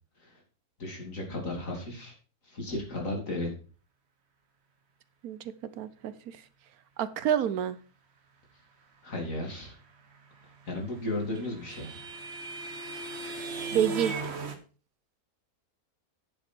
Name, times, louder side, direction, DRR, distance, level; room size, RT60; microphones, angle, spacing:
voice 1, 0.8-2.1 2.5-3.5 9.0-9.7 10.7-12.0, left 2 dB, 55° left, 0 dB, 3.3 m, -34 dB
voice 2, 5.8-6.4 7.0-7.8 13.7-14.1, right 10 dB, 75° right, 14 dB, 1.2 m, -28 dB
sound 1, 10.7-14.5, right 3 dB, 45° right, 1.3 m, -37 dB
9.9 x 7.1 x 4.5 m, 0.37 s
omnidirectional pair, 1.6 m